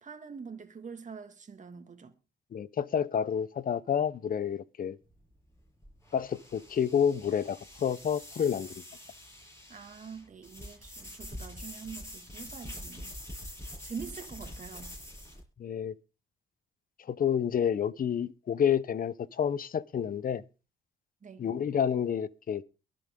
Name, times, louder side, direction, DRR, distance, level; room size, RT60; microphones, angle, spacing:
voice 1, 0.0-2.1 9.7-13.1 13.8-14.9 21.2-21.5, right 6 dB, 40° right, 2.2 m, -44 dB
voice 2, 2.5-5.0 6.1-8.7 15.6-15.9 17.1-20.4 21.4-22.6, left 8 dB, 45° left, 0.8 m, -29 dB
sound 1, 5.0-15.4, left 1 dB, 15° left, 7.5 m, -45 dB
22.5 x 7.6 x 3.8 m
cardioid pair, 90°, 20 cm